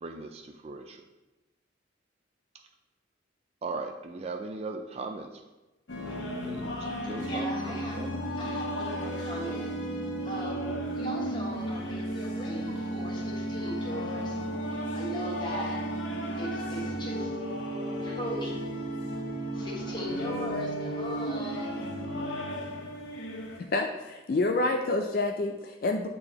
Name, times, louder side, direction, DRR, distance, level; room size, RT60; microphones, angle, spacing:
voice 1, 0.0-1.0 3.6-5.4 6.4-8.1, right 3 dB, 30° right, 3 dB, 0.3 m, -38 dB
sound 1, 5.9-23.6, right 1 dB, 65° left, 0.9 m, -34 dB
voice 2, 7.2-8.0 8.4-9.7 10.2-14.5 14.9-15.9 16.4-17.6 18.0-18.7 19.5-21.7, equal, 25° left, -3 dB, 1.2 m, -38 dB
sound 2, 17.1-18.1 20.1-21.1, left 3 dB, 15° right, 1.4 m, -40 dB
voice 3, 23.7-26.1, left 2 dB, 45° left, 4 dB, 0.3 m, -28 dB
8.6 x 3.8 x 2.9 m, 1.1 s
head